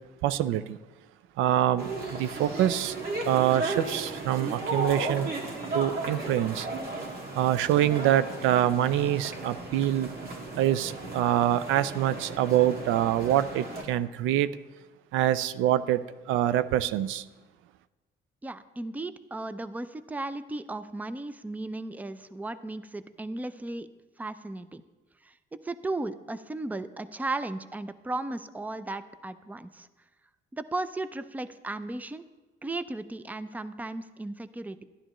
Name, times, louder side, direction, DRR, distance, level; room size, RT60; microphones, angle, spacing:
voice 1, 0.2-0.8 1.4-3.0 3.2-5.3 5.7-6.7 7.4-10.1 10.5-14.5 15.1-17.3, right 12 dB, 85° right, 0.4 m, -25 dB
sound 1, 1.8-13.8, right 2 dB, 50° right, 1.9 m, -35 dB
voice 2, 18.4-23.9 24.2-24.8 25.2-29.9 30.5-32.2 32.6-34.8, right 2 dB, 10° right, 0.4 m, -35 dB
11.5 x 11.5 x 3.0 m
cardioid pair, 95°, 20 cm